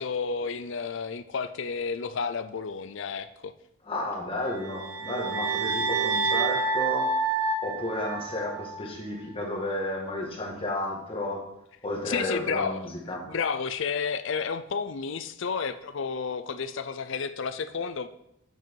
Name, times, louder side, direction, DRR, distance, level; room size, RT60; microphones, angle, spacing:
voice 1, 0.0-3.5 12.1-12.8 13.3-18.1, left 5 dB, 60° left, 12 dB, 0.5 m, -31 dB
voice 2, 3.8-7.1 7.6-11.4 11.8-12.8 13.1-13.2, left 1 dB, 25° left, -1 dB, 1.6 m, -32 dB
sound 1, 4.6-8.8, right 4 dB, 75° right, 0.9 m, -28 dB
7.5 x 5.9 x 4.6 m, 0.79 s
head